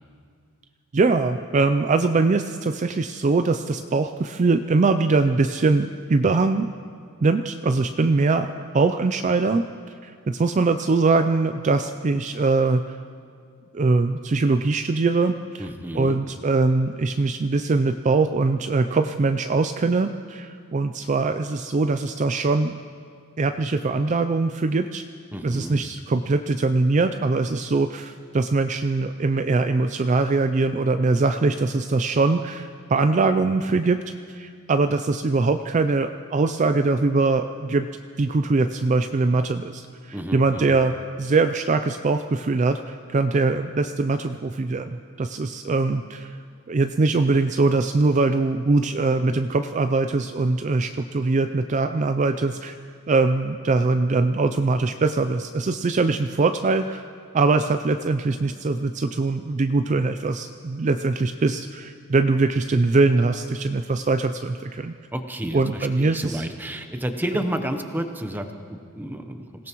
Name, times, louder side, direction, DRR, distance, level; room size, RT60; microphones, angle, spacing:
voice 1, 0.9-6.7 7.2-9.6 10.0-13.0 13.7-22.7 23.4-25.0 25.4-34.0 34.3-37.9 38.2-46.4 46.7-52.8 53.1-57.1 57.3-65.0 65.5-66.5, right 3 dB, 35° right, 8 dB, 0.4 m, -22 dB
voice 2, 15.6-16.2 25.3-25.8 40.1-40.8 65.1-69.7, right 1 dB, 10° right, 6 dB, 0.8 m, -31 dB
26.5 x 17.0 x 3.0 m, 2.2 s
head